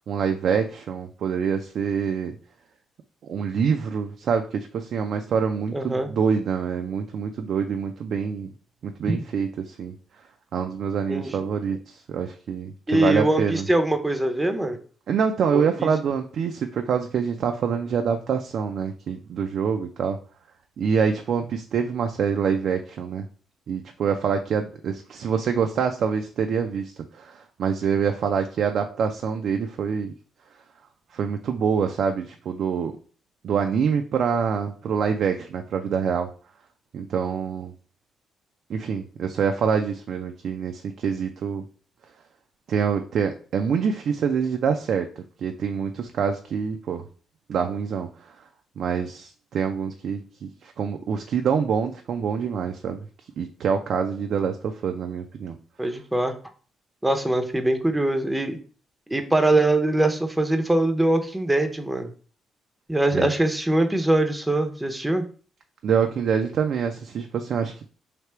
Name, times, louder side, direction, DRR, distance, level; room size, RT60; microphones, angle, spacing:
voice 1, 0.1-2.4 3.3-8.5 8.8-9.9 10.5-13.7 15.1-20.2 20.8-23.3 23.7-30.1 31.1-33.0 33.4-36.3 36.9-37.7 38.7-41.6 42.7-47.0 47.5-48.3 48.8-53.0 53.4-55.5 63.1-63.3 65.8-67.8, right 6 dB, 65° right, 5 dB, 0.4 m, -26 dB
voice 2, 5.7-6.1 9.0-9.2 11.1-11.4 12.9-14.8 15.5-15.9 55.8-56.3 57.0-58.6 59.1-62.1 62.9-65.2, right 1 dB, 10° right, 6 dB, 0.6 m, -22 dB
3.4 x 2.8 x 4.3 m, 0.41 s
cardioid pair, 90°, 0 cm